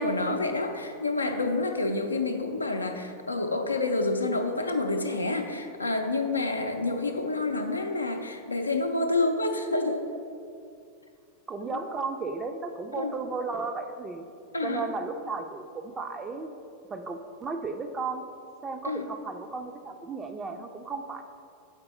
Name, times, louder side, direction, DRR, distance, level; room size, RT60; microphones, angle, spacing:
voice 1, 0.0-10.0 13.0-13.1 14.5-14.9 18.8-19.0, left 2 dB, 80° left, 5 dB, 0.5 m, -28 dB
voice 2, 11.5-14.3 14.6-16.5 16.9-18.2 18.6-21.2, right 4 dB, 20° right, 6 dB, 0.4 m, -34 dB
7.3 x 4.7 x 4.1 m, 2.4 s
figure-of-eight pair, 90°, 0 cm